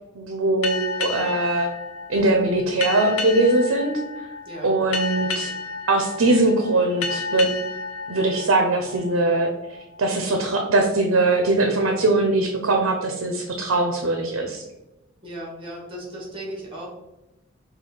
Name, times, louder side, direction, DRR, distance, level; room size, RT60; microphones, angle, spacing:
voice 1, 0.1-1.7 2.1-4.0 4.6-5.5 5.9-7.5 8.1-9.5 10.0-14.6, right 2 dB, 70° right, 3 dB, 0.6 m, -21 dB
sound 1, 0.6-9.8, left 4 dB, 80° left, 0.6 m, -32 dB
voice 2, 15.2-16.9, right 1 dB, 25° right, -3 dB, 1.3 m, -36 dB
5.1 x 2.3 x 3.7 m, 0.98 s
head